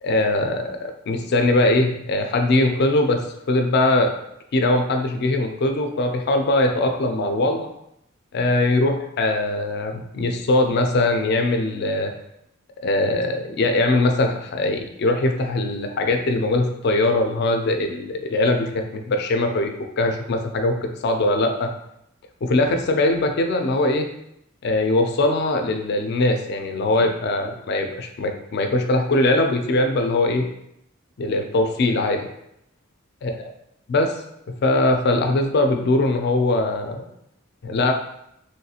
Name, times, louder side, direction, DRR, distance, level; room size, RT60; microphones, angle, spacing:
voice 1, 0.0-3.2 3.5-4.1 4.5-7.7 8.3-12.1 12.8-21.7 22.4-24.1 24.6-30.5 31.2-32.3 33.2-33.5 33.9-34.1 34.5-37.0 37.6-37.9, left 2 dB, 55° left, 4 dB, 0.4 m, -21 dB
3.1 x 2.4 x 2.7 m, 0.77 s
head